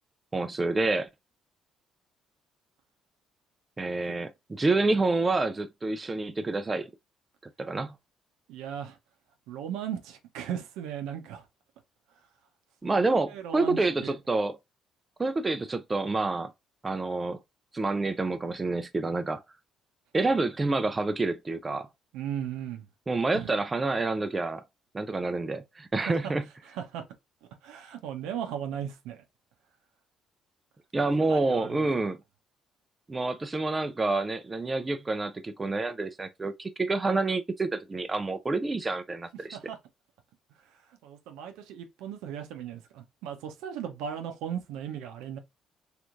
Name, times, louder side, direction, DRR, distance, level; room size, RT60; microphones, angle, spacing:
voice 1, 0.3-1.1 3.8-6.9 7.6-7.9 12.8-14.6 15.2-16.5 16.8-17.4 17.7-19.4 20.1-21.9 23.1-24.6 24.9-26.4 30.9-32.2 33.1-39.6, right 3 dB, 25° right, 0.5 m, -28 dB
voice 2, 8.5-9.0 9.5-11.4 12.8-14.1 22.1-22.9 23.3-23.5 26.1-26.3 26.7-27.0 27.6-29.2 31.3-31.8 39.5-39.8 41.0-45.4, right 9 dB, 70° right, 0.8 m, -37 dB
3.3 x 3.1 x 2.5 m
hypercardioid pair, 50°, 0 cm